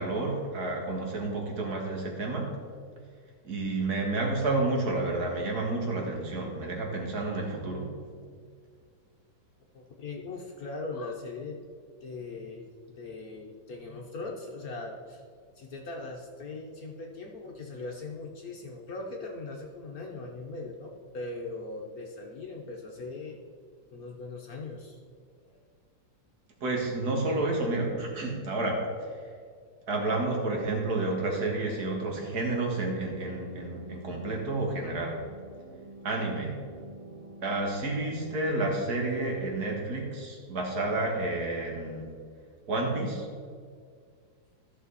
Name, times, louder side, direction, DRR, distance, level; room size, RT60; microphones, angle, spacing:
voice 1, 0.0-2.5 3.4-7.9 26.6-28.8 29.1-29.2 29.9-35.2 36.0-36.6 37.4-42.1 42.7-43.3, right 2 dB, 55° right, 0 dB, 2.2 m, -30 dB
voice 2, 9.7-11.6 12.0-12.6 12.9-15.2 15.5-23.4 23.9-25.0 25.4-25.6, left 3 dB, 55° left, 1 dB, 1.2 m, -40 dB
sound 1, 30.6-38.4, right 2 dB, 15° right, 1.9 m, -48 dB
14.0 x 6.4 x 4.1 m, 2.1 s
omnidirectional pair, 2.1 m